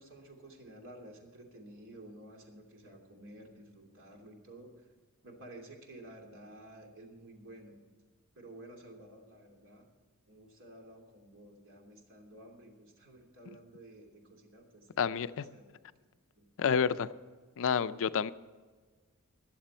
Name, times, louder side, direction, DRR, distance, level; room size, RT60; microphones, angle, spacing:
voice 1, 0.0-4.9 5.2-7.8 8.3-9.9 10.3-15.8 16.3-16.8, right 1 dB, 60° right, 2.9 m, -53 dB
voice 2, 15.0-15.5 16.6-17.1 17.6-18.3, left 7 dB, 65° left, 0.5 m, -29 dB
21.0 x 7.6 x 4.4 m
head